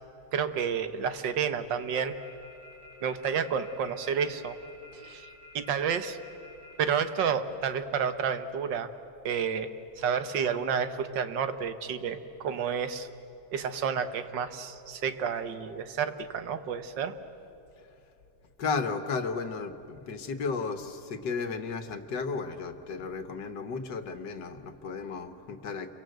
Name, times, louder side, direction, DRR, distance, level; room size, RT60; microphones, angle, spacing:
voice 1, 0.3-2.1 3.0-4.6 4.9-5.3 5.6-6.2 6.8-8.9 9.2-9.7 10.0-13.1 13.5-17.1, right 7 dB, 90° right, 10 dB, 1.8 m, -30 dB
sound 1, 2.0-6.9, left 3 dB, 70° right, 8.7 m, -51 dB
voice 2, 18.6-25.9, left 4 dB, 80° left, 9 dB, 1.9 m, -34 dB
29.0 x 23.5 x 7.9 m, 2.9 s
omnidirectional pair, 1.9 m